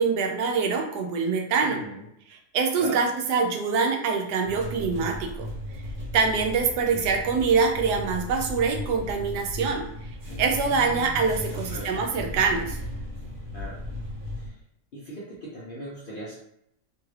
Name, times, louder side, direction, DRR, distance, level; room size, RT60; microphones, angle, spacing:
voice 1, 0.0-1.8 2.3-5.5 6.1-9.8 10.4-12.8, right 5 dB, 85° right, 3 dB, 1.2 m, -24 dB
voice 2, 1.6-2.1 2.8-3.0 10.3-12.0 13.5-13.8 14.4-14.6 14.9-16.3, right 1 dB, 60° left, -6 dB, 0.5 m, -40 dB
sound 1, 4.4-14.5, left 1 dB, 60° right, 1.1 m, -36 dB
3.1 x 2.3 x 3.2 m, 0.75 s
omnidirectional pair, 1.7 m